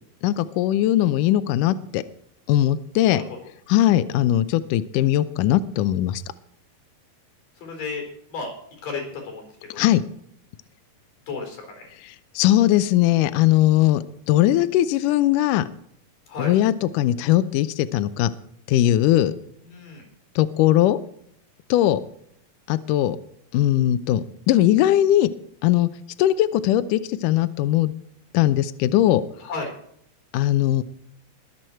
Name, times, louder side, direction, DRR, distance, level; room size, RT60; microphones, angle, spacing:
voice 1, 0.2-2.0 2.5-3.2 3.7-6.2 9.8-10.0 12.0-15.7 16.4-18.3 18.7-19.3 20.4-21.0 21.7-22.0 22.7-23.2 23.5-25.3 25.6-25.9 26.2-27.9 28.3-29.2 30.3-30.8, left 13 dB, 85° left, 13 dB, 1.9 m, -20 dB
voice 2, 7.6-8.5 8.8-9.8 11.3-11.9 16.3-16.6 19.7-20.1 29.4-29.7, left 4 dB, 60° left, 3 dB, 5.7 m, -33 dB
22.0 x 7.9 x 4.5 m, 0.70 s
omnidirectional pair, 4.4 m